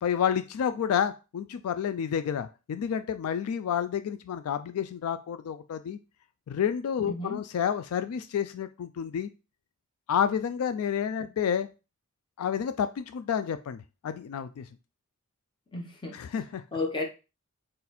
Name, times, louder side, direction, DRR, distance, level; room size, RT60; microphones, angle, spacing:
voice 1, 0.0-6.0 6.5-9.3 10.1-11.7 12.4-14.7 16.1-16.6, left 8 dB, 75° left, 0.3 m, -30 dB
voice 2, 7.0-7.4 15.7-16.2 16.7-17.0, left 2 dB, 20° left, 0.9 m, -32 dB
4.1 x 2.6 x 4.1 m
head